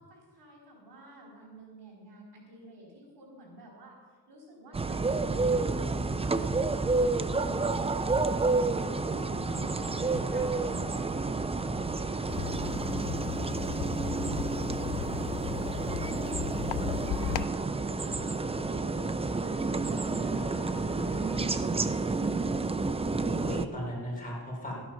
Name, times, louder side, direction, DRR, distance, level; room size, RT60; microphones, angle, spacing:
voice 1, 0.0-11.0 11.4-17.5 17.8-18.9, right 1 dB, 85° right, -2 dB, 4.5 m, -51 dB
sound 1, 4.7-23.7, right 3 dB, 15° right, 0.4 m, -30 dB
sound 2, 7.2-22.4, left 5 dB, 60° left, 1.3 m, -51 dB
sound 3, 12.3-17.5, left 12 dB, 75° left, 0.5 m, -36 dB
voice 2, 23.2-24.8, equal, 20° left, -4 dB, 4.3 m, -37 dB
13.5 x 9.4 x 5.7 m, 1.5 s
wide cardioid pair, 125°, 40 cm